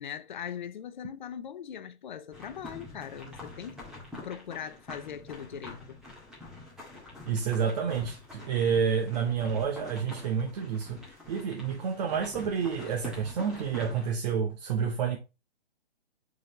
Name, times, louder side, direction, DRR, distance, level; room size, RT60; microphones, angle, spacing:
voice 1, 0.0-3.8 4.1-6.0, left 8 dB, 45° left, 0.6 m, -40 dB
sound 1, 2.3-14.1, left 2 dB, ahead, 1.9 m, -46 dB
voice 2, 7.3-11.0 11.3-15.2, right 6 dB, 40° right, 0.9 m, -29 dB
5.0 x 4.1 x 4.9 m
figure-of-eight pair, 135°, 33 cm